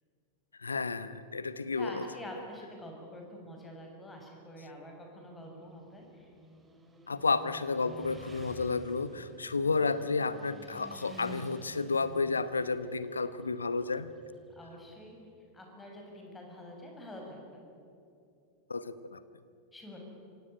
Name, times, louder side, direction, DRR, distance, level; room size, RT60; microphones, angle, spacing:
voice 1, 0.6-2.0 7.1-14.1 18.7-19.2, left 4 dB, 75° left, 14 dB, 1.0 m, -31 dB
voice 2, 1.7-6.3 14.6-15.2 15.5-17.7 19.7-20.0, left 1 dB, 10° left, 1 dB, 6.5 m, -46 dB
Motorcycle, 5.3-15.1, right 1 dB, 10° right, 3.5 m, -51 dB
25.0 x 17.5 x 9.9 m, 2.5 s
figure-of-eight pair, 90°, 0 cm